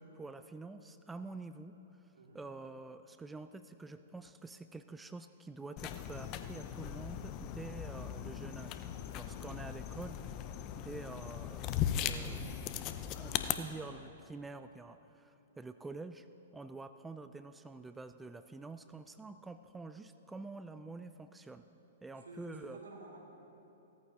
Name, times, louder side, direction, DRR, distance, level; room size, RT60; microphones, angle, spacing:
voice 1, 0.0-10.2 10.8-16.3 16.5-21.7 22.0-22.8, right 3 dB, 10° right, 10 dB, 0.3 m, -48 dB
sound 1, 5.8-13.5, left 10 dB, 35° left, 0.6 m, -38 dB
voice 2, 22.1-23.2, right 2 dB, 90° right, -1 dB, 2.4 m, -52 dB
17.5 x 14.0 x 2.8 m, 3.0 s
hypercardioid pair, 125°, 0 cm